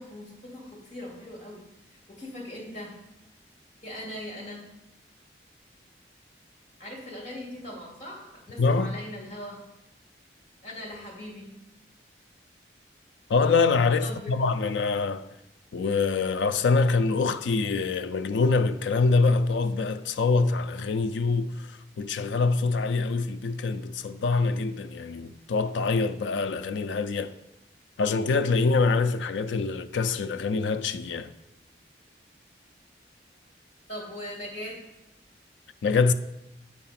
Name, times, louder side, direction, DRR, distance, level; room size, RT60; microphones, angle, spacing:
voice 1, 0.0-1.6 2.1-2.9 3.8-4.6 6.8-9.6 10.6-11.5 14.0-14.3 33.9-34.8, left 1 dB, 40° left, 2.5 m, -40 dB
voice 2, 8.6-8.9 13.3-15.3 15.7-21.7 22.0-27.3 28.0-31.3 35.8-36.1, left 4 dB, 85° left, 0.4 m, -25 dB
7.6 x 4.8 x 5.7 m
head